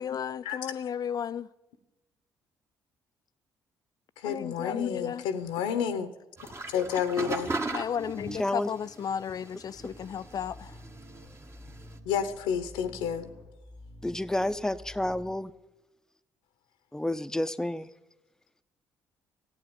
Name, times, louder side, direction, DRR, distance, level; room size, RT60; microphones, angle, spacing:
voice 1, 0.0-1.5 4.2-5.3 7.7-10.8, left 8 dB, 50° left, 0.4 m, -34 dB
voice 2, 4.2-6.1 6.7-7.5 12.0-13.3, left 7 dB, 85° left, 0.9 m, -30 dB
sound 1, 6.4-12.0, right 3 dB, 30° right, 1.5 m, -38 dB
voice 3, 8.4-8.7 14.0-15.5 16.9-17.9, left 1 dB, 5° left, 0.7 m, -30 dB
sound 2, 9.7-15.3, left 1 dB, 90° right, 2.8 m, -49 dB
14.5 x 8.7 x 8.8 m
hypercardioid pair, 55°, 9 cm